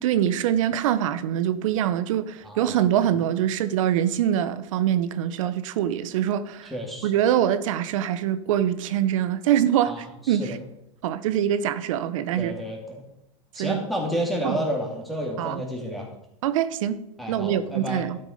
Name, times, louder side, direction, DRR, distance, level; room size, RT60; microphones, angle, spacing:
voice 1, 0.0-6.7 7.0-10.6 11.0-12.6 13.6-13.8 14.4-14.6 15.4-15.6 16.4-17.0 17.3-18.2, right 10 dB, 75° right, 0.9 m, -24 dB
voice 2, 2.4-2.9 6.7-7.1 9.9-10.6 12.4-13.0 13.5-16.1 17.2-18.0, equal, ahead, 2.3 m, -30 dB
12.0 x 7.1 x 5.1 m
supercardioid pair, 130°, 17 cm